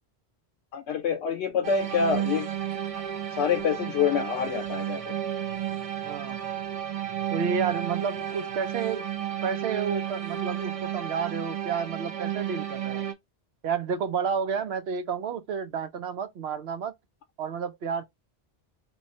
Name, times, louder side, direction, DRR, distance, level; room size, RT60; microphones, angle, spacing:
voice 1, 0.7-2.5 3.3-5.0, left 7 dB, 85° left, 0.8 m, -26 dB
sound 1, 1.6-13.1, right 10 dB, 50° right, 0.4 m, -32 dB
voice 2, 6.0-6.4 7.3-9.0 9.4-13.1 13.6-16.9 17.4-18.0, right 6 dB, 75° right, 0.9 m, -30 dB
3.1 x 2.2 x 4.0 m
omnidirectional pair, 1.1 m